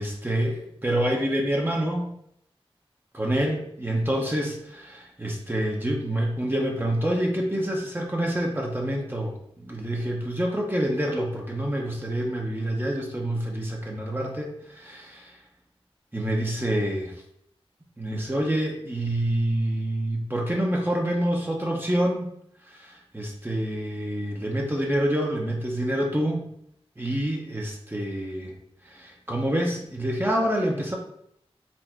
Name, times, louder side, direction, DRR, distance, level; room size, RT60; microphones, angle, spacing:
voice 1, 0.0-2.1 3.1-15.4 16.1-17.1 18.0-22.3 22.7-26.4 27.0-28.5 28.8-31.0, right 1 dB, 20° right, -1 dB, 0.8 m, -27 dB
4.3 x 2.5 x 4.4 m, 0.71 s
wide cardioid pair, 75°, 10 cm